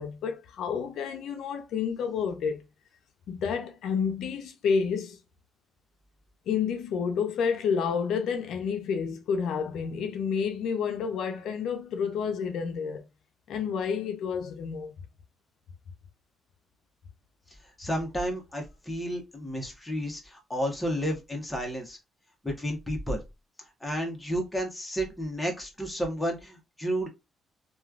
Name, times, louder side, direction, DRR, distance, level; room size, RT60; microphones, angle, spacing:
voice 1, 0.0-2.6 3.3-5.2 6.5-13.0 13.5-14.9, left 6 dB, 75° left, 0.5 m, -29 dB
voice 2, 17.8-22.0 22.4-23.2 23.8-27.1, equal, 10° left, 1.0 m, -31 dB
3.0 x 2.3 x 2.4 m
cardioid pair, 90°, 0 cm